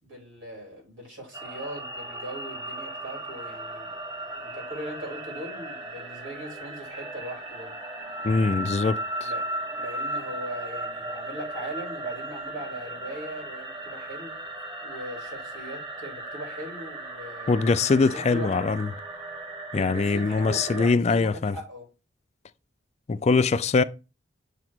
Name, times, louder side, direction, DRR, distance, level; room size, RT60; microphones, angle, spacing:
voice 1, 0.0-3.9 4.3-7.7 9.2-14.3 14.8-18.7 19.7-21.9, right 1 dB, 80° right, 3.3 m, -40 dB
sound 1, 1.3-20.9, right 1 dB, 25° right, 1.2 m, -36 dB
voice 2, 8.2-9.3 17.5-18.9 19.7-21.5 23.1-23.8, left 4 dB, 35° left, 0.3 m, -23 dB
7.2 x 2.9 x 6.0 m
head